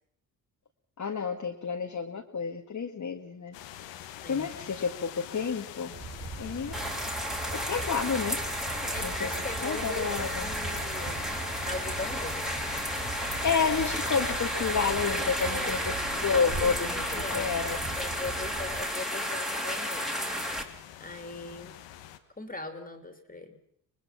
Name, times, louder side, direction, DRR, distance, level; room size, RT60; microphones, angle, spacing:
voice 1, 1.0-3.6 4.3-5.9 6.4-6.8 7.5-8.4 9.0-9.3 9.6-10.5 13.4-17.8, left 5 dB, 40° left, 1 dB, 1.7 m, -30 dB
sound 1, 3.5-22.2, left 12 dB, 80° left, 1.3 m, -46 dB
sound 2, 5.9-18.8, right 3 dB, 75° right, 8.0 m, -40 dB
sound 3, 6.7-20.6, equal, ahead, 3.0 m, -33 dB
voice 2, 8.7-10.1 10.4-11.3 11.6-12.5 15.4-15.8 16.4-17.5 17.8-20.1 21.0-21.8 22.4-23.6, left 3 dB, 20° left, 6 dB, 2.9 m, -40 dB
24.5 x 19.5 x 5.9 m, 0.68 s
hypercardioid pair, 50°, 43 cm